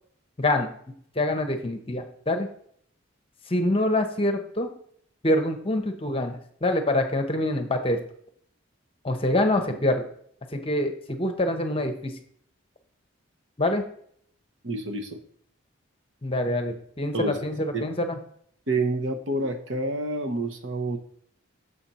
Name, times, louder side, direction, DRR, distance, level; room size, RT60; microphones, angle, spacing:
voice 1, 0.4-0.7 1.2-2.5 3.5-4.7 5.2-8.0 9.0-10.0 10.5-12.1 13.6-13.8 16.2-18.2, left 1 dB, 25° left, 6 dB, 0.8 m, -25 dB
voice 2, 14.6-15.2 17.1-17.4 17.7-17.9 18.7-21.0, right 2 dB, 65° right, 4 dB, 1.0 m, -28 dB
6.8 x 4.4 x 5.5 m, 0.63 s
head